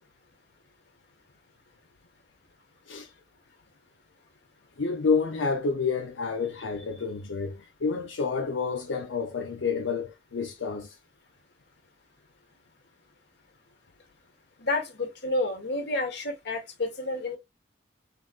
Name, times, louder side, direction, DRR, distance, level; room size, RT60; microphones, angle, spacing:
voice 1, 4.8-11.0, left 5 dB, 80° left, 0.6 m, -29 dB
voice 2, 14.6-17.4, left 2 dB, 65° left, 1.4 m, -30 dB
3.9 x 3.6 x 2.4 m
head